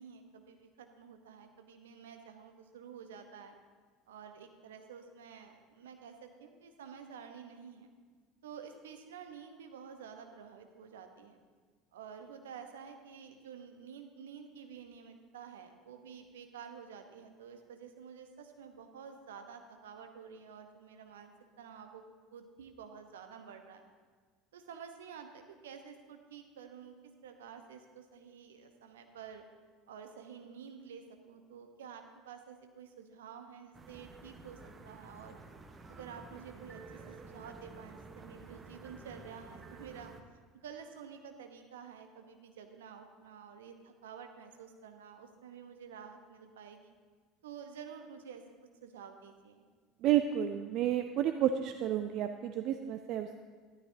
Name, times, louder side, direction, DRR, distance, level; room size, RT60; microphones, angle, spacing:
voice 1, 0.0-3.6 4.1-7.9 8.4-11.4 11.9-23.8 24.5-27.0 27.2-29.4 29.9-35.4 35.9-40.1 40.6-46.9 47.4-48.4 48.8-49.6, right 7 dB, 75° right, 6 dB, 0.9 m, -50 dB
sound 1, 33.7-40.2, right 4 dB, 25° right, 1.0 m, -51 dB
voice 2, 50.0-53.4, right 11 dB, 50° right, 8 dB, 0.4 m, -31 dB
13.5 x 12.0 x 2.8 m, 1.5 s
figure-of-eight pair, 65°, 0 cm